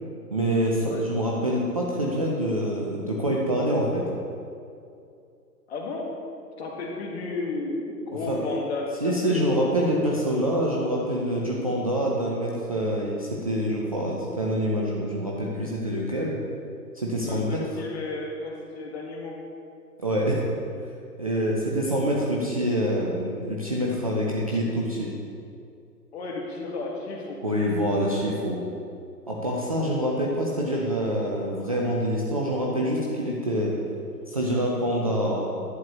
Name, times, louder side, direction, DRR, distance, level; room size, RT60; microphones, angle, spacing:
voice 1, 0.3-4.0 8.3-8.4 9.0-16.4 16.9-17.6 20.0-20.4 21.2-25.1 27.4-28.6 29.3-33.7 34.3-35.5, equal, 25° right, -4 dB, 0.5 m, -26 dB
voice 2, 5.7-6.1 6.6-9.7 17.2-19.4 24.5-24.7 26.1-27.4, left 3 dB, 40° left, 0 dB, 1.5 m, -33 dB
10.5 x 8.7 x 2.9 m, 2.5 s
figure-of-eight pair, 135°, 49 cm